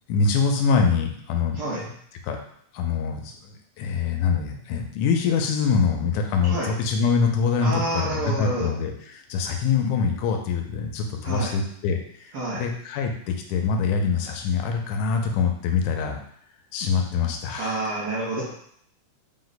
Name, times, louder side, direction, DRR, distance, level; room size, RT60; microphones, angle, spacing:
voice 1, 0.1-1.6 2.2-2.4 2.7-8.9 9.3-16.2 16.7-17.8, left 5 dB, 85° left, 4 dB, 2.0 m, -24 dB
voice 2, 1.5-1.9 6.4-6.8 7.6-8.7 11.2-11.6 12.3-12.7 17.6-18.6, right 1 dB, 65° right, -8 dB, 1.4 m, -28 dB
5.0 x 2.1 x 4.0 m, 0.65 s
omnidirectional pair, 3.4 m